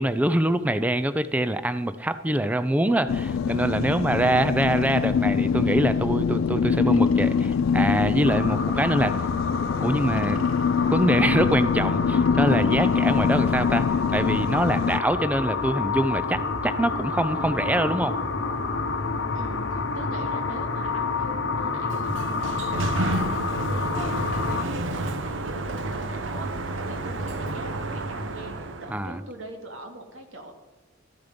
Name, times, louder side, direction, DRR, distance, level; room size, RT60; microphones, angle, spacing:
voice 1, 0.0-9.2 9.8-10.5 10.9-18.2 28.9-29.2, right 1 dB, 10° right, 12 dB, 0.4 m, -24 dB
sound 1, 3.1-15.0, left 6 dB, 85° left, 0.4 m, -24 dB
voice 2, 3.8-4.1 19.3-30.5, right 1 dB, 85° right, 4 dB, 2.3 m, -42 dB
sound 2, 8.2-24.6, left 4 dB, 65° left, 0.9 m, -29 dB
Sliding door, 21.7-29.1, right 2 dB, 70° right, 0.9 m, -30 dB
13.5 x 10.5 x 5.1 m, 1.2 s
head